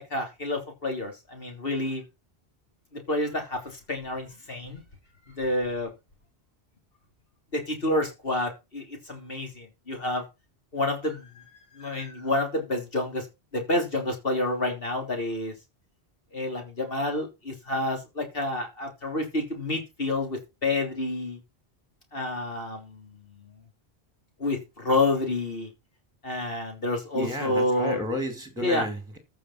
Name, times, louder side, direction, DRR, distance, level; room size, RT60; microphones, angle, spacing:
voice 1, 0.0-2.0 2.9-4.8 5.3-5.9 7.5-10.2 10.7-13.3 13.5-15.5 16.3-21.4 22.1-23.1 23.4-23.5 24.4-25.7 26.2-28.0 28.6-28.9, left 2 dB, 60° left, 3.5 m, -29 dB
voice 2, 27.1-29.2, left 1 dB, 5° right, 2.5 m, -32 dB
14.0 x 5.7 x 5.7 m
omnidirectional pair, 1.1 m